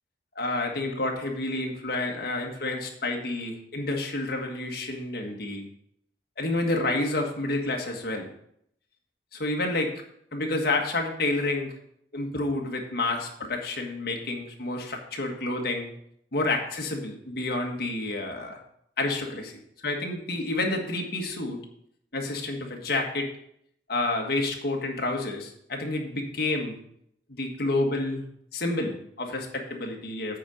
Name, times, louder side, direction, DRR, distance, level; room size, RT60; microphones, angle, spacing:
voice 1, 0.3-5.6 6.4-8.3 9.3-9.9 10.3-11.7 12.1-15.9 16.3-18.6 19.0-21.6 22.1-23.3 23.9-26.8 27.3-28.2 28.5-30.4, left 2 dB, 60° left, 2 dB, 1.6 m, -29 dB
8.5 x 5.2 x 6.4 m, 0.72 s
head